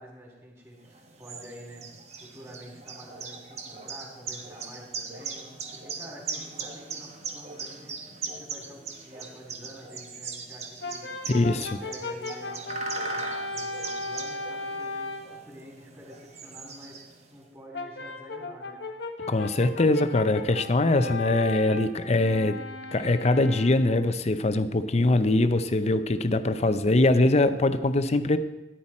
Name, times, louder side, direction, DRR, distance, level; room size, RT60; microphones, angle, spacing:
voice 1, 0.0-1.8 2.2-11.3 11.5-18.8, equal, 15° right, -2 dB, 3.5 m, -48 dB
sound 1, 0.8-17.4, right 5 dB, 40° right, 1.1 m, -40 dB
Brass instrument, 10.8-15.4 17.7-24.1, left 2 dB, 75° left, 1.1 m, -36 dB
voice 2, 11.3-11.7 19.3-22.6 22.9-28.4, left 2 dB, 40° left, 11 dB, 0.6 m, -22 dB
13.5 x 10.0 x 4.3 m, 1.0 s
head